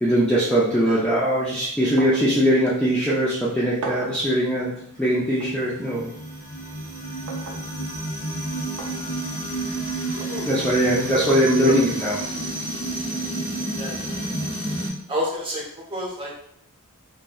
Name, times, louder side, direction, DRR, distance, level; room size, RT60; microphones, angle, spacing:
voice 1, 0.0-4.7 5.0-6.1 10.4-12.2, equal, 5° left, -9 dB, 0.3 m, -21 dB
sound 1, 2.0-2.3 2.7-2.8 3.8-4.3 5.4-5.6 7.3-7.6 8.8-9.0 10.2-10.4, right 3 dB, 70° right, 0.4 m, -34 dB
sound 2, 5.1-14.9, right 1 dB, 65° left, 0.8 m, -30 dB
voice 2, 13.8-14.2 15.1-15.6 15.9-16.3, equal, 25° right, -4 dB, 0.7 m, -29 dB
2.7 x 2.1 x 2.2 m, 0.71 s
head